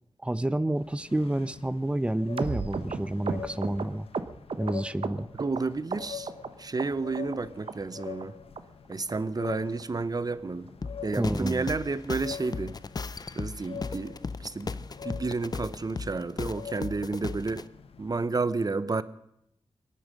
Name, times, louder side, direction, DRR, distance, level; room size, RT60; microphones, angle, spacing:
voice 1, 0.2-4.1 4.6-5.3 11.2-11.7, right 1 dB, 10° right, 0.6 m, -29 dB
sound 1, 0.8-18.2, left 8 dB, 80° left, 0.9 m, -45 dB
sound 2, 2.4-5.6 5.9-6.5 6.8-7.4 7.7-7.8 8.0-8.3 8.6-8.7 8.9-9.1 9.4-9.5 9.8-10.0 10.3-10.4 10.7-10.9 11.2-11.3 11.6-11.8 12.1-12.2, right 5 dB, 65° right, 1.0 m, -35 dB
voice 2, 5.4-6.3 6.6-8.3 8.9-10.7 11.0-12.8 13.4-17.6 18.0-19.0, right 3 dB, 40° right, 0.8 m, -31 dB
sound 3, 10.8-17.6, left 4 dB, 40° left, 0.5 m, -37 dB
24.5 x 8.9 x 6.4 m
cardioid pair, 60°, 10 cm